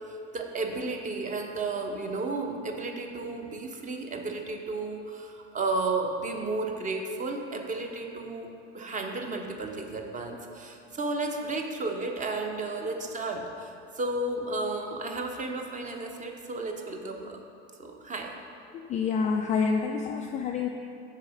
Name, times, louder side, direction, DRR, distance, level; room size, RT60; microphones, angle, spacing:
voice 1, 0.1-8.5 8.7-17.4 17.8-18.3, right 3 dB, 20° right, 3 dB, 0.8 m, -33 dB
voice 2, 18.9-20.7, left 5 dB, 20° left, 2 dB, 0.3 m, -27 dB
6.6 x 4.8 x 6.3 m, 2.6 s
figure-of-eight pair, 75°, 34 cm